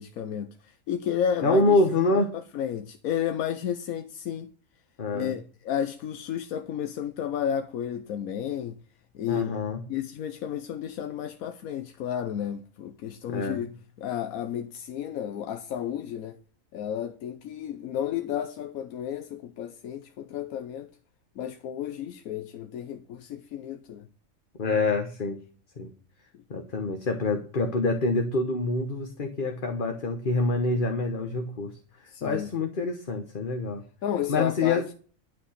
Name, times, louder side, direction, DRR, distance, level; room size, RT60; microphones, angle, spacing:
voice 1, 0.0-1.8 2.1-4.5 5.1-8.8 9.1-9.6 9.9-16.4 16.7-20.9 21.4-24.1 26.3-26.4 32.1-32.5 34.0-34.8, left 9 dB, 85° left, 1.2 m, -32 dB
voice 2, 1.4-2.3 5.0-5.3 9.3-9.8 13.3-13.6 24.6-25.4 25.8-25.9 26.5-31.7 32.0-33.8 34.3-34.8, left 3 dB, 40° left, 1.3 m, -26 dB
11.5 x 5.9 x 6.5 m
omnidirectional pair, 1.4 m